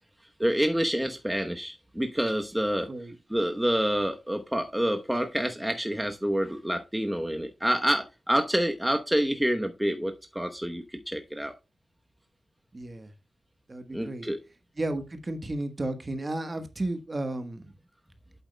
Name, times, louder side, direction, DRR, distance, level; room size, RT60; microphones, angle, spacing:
voice 1, 0.4-2.9 3.3-11.5 13.9-14.4, equal, 5° right, 0.9 m, -27 dB
voice 2, 12.7-13.1 13.7-14.3 14.8-17.7, right 2 dB, 30° right, 1.2 m, -33 dB
8.3 x 8.0 x 2.2 m
wide cardioid pair, 90°, 0 cm